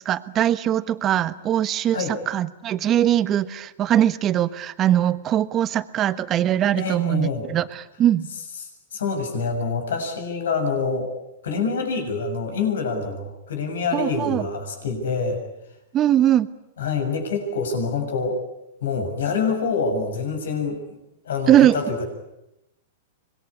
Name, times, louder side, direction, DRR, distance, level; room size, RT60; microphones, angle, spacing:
voice 1, 0.0-8.3 13.9-14.5 15.9-16.5 21.5-21.8, right 11 dB, 30° right, 13 dB, 1.3 m, -21 dB
voice 2, 6.7-7.4 8.9-11.1 11.4-15.4 16.8-18.4 18.8-21.0 21.2-22.0, left 4 dB, 80° left, 6 dB, 6.8 m, -26 dB
26.0 x 21.5 x 9.9 m, 0.87 s
hypercardioid pair, 135°, 0 cm